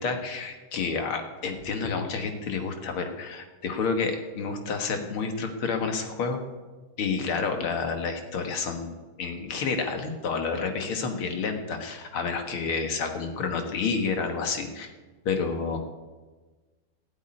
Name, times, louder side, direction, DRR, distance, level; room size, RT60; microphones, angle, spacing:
voice 1, 0.0-6.4 7.0-14.9 15.3-15.8, left 5 dB, 75° left, 5 dB, 2.4 m, -29 dB
14.0 x 8.4 x 9.7 m, 1.3 s
omnidirectional pair, 2.4 m